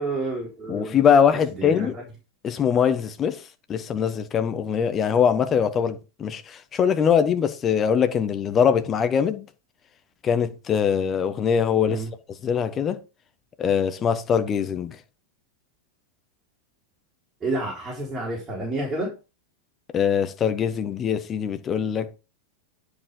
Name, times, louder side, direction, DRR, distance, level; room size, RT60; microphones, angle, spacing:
voice 1, 0.0-1.0 1.3-2.0 11.9-12.1 17.4-19.1, right 2 dB, 15° right, 3.6 m, -30 dB
voice 2, 0.7-2.0 2.4-3.4 3.7-9.4 10.2-12.0 12.4-13.0 13.6-15.0 19.9-22.2, left 7 dB, 25° left, 1.1 m, -22 dB
9.8 x 5.1 x 5.2 m
figure-of-eight pair, 90°, 0 cm